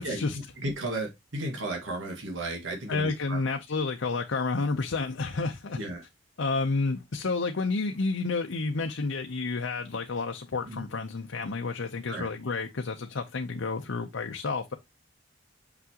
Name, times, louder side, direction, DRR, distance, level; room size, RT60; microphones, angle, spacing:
voice 1, 0.0-0.4 2.9-5.8 6.4-14.7, left 3 dB, 85° left, 0.7 m, -30 dB
voice 2, 0.6-3.4 5.8-6.0 10.7-10.9 12.1-12.3, right 2 dB, 85° right, 1.9 m, -34 dB
6.0 x 5.8 x 2.9 m
head